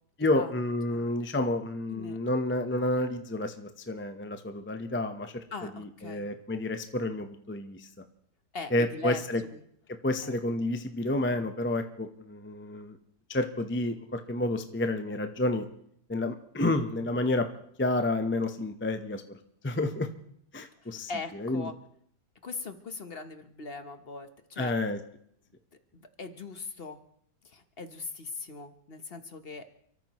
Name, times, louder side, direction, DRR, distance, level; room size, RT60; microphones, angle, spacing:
voice 1, 0.2-5.3 5.7-7.9 8.7-9.4 10.0-13.0 13.3-15.6 16.1-17.5 17.8-19.4 19.6-20.1 20.5-21.1 21.4-21.7 24.6-25.0, left 2 dB, 15° left, 7 dB, 0.4 m, -30 dB
voice 2, 5.5-6.3 8.5-9.2 9.5-9.6 10.2-10.3 20.8-21.7 22.4-24.8 25.9-27.0 27.4-29.7, left 4 dB, 40° left, 8 dB, 1.1 m, -40 dB
29.5 x 13.5 x 3.0 m, 0.67 s
omnidirectional pair, 1.9 m